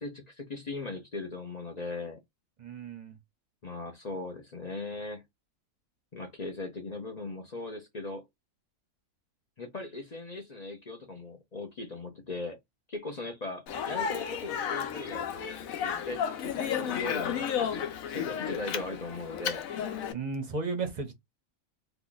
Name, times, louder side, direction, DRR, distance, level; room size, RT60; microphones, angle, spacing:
voice 1, 0.0-2.2 3.6-5.2 6.1-8.2 9.6-12.6 12.9-15.3 15.8-19.6, left 3 dB, 45° left, 0.5 m, -39 dB
voice 2, 2.6-3.2 20.1-21.1, right 4 dB, 40° right, 0.7 m, -34 dB
Speech, 13.7-20.1, left 8 dB, 75° left, 1.1 m, -33 dB
2.9 x 2.3 x 3.8 m
omnidirectional pair, 1.5 m